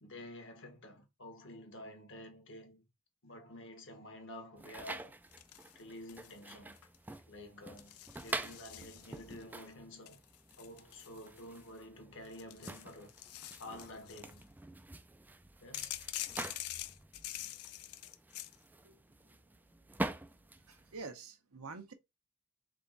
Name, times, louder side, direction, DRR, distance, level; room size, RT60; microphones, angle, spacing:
voice 1, 0.0-2.9 3.2-5.1 5.7-6.8 7.3-10.2 10.6-13.1 13.6-14.5 15.6-16.0, left 1 dB, 60° left, 1.3 m, -50 dB
sound 1, 4.6-21.0, right 2 dB, 10° right, 0.3 m, -46 dB
sound 2, 5.3-6.4 6.7-7.1 7.8-9.4 10.1-11.8 12.3-14.4 15.7-18.6, left 14 dB, 90° left, 0.5 m, -46 dB
voice 2, 20.7-21.9, right 4 dB, 85° right, 0.9 m, -47 dB
3.6 x 3.5 x 4.0 m
head